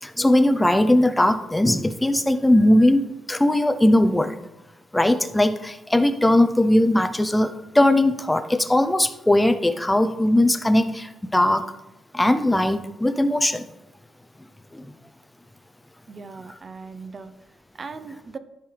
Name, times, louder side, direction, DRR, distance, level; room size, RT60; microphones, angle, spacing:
voice 1, 0.0-4.4 4.9-11.7 12.1-13.7 14.7-14.9, left 1 dB, 10° left, 9 dB, 0.7 m, -19 dB
voice 2, 16.1-17.3 17.7-18.4, right 4 dB, 40° right, 11 dB, 0.7 m, -38 dB
13.0 x 5.4 x 3.4 m, 0.95 s
cardioid pair, 100°, 0 cm